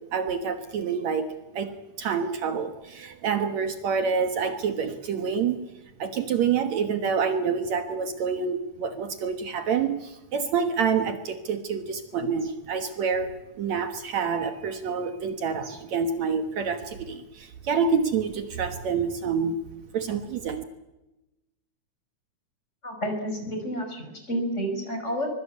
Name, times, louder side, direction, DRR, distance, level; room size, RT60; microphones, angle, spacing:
voice 1, 0.1-1.3 1.5-5.6 6.0-13.3 13.6-19.6 19.9-20.6, right 6 dB, 65° right, 7 dB, 2.5 m, -27 dB
voice 2, 22.8-25.3, equal, 20° left, 4 dB, 5.8 m, -30 dB
24.5 x 22.0 x 8.4 m, 0.98 s
omnidirectional pair, 3.6 m